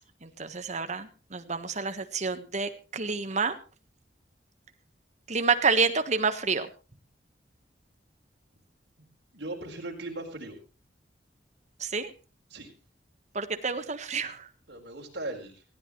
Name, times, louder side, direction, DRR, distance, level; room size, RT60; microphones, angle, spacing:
voice 1, 0.2-3.6 5.3-6.7 11.8-12.1 13.3-14.5, right 4 dB, 40° right, 9 dB, 1.4 m, -28 dB
voice 2, 9.3-10.6 12.5-12.7 14.7-15.6, right 2 dB, 65° right, 0 dB, 4.3 m, -38 dB
19.0 x 15.5 x 3.2 m, 0.32 s
head